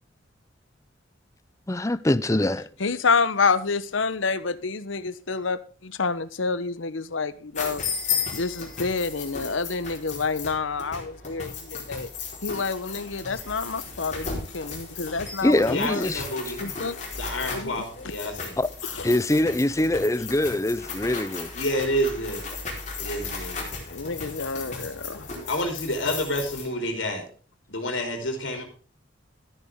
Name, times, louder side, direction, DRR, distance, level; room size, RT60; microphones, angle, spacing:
voice 1, 1.7-2.7 15.4-16.2 16.6-16.7 18.6-18.7 19.0-21.5, left 1 dB, 15° left, 0.5 m, -23 dB
voice 2, 2.8-7.8 8.3-12.1 12.4-16.0 16.6-17.0 17.5-17.7 18.8-19.2 23.9-25.3, left 4 dB, 90° left, 1.0 m, -28 dB
sound 1, 7.5-26.6, left 5 dB, 40° left, 4.4 m, -35 dB
voice 3, 15.7-16.7 17.1-18.6 21.5-22.4 23.0-23.6 25.5-27.2 27.7-28.6, equal, 75° left, 3.6 m, -29 dB
13.0 x 10.5 x 3.7 m
head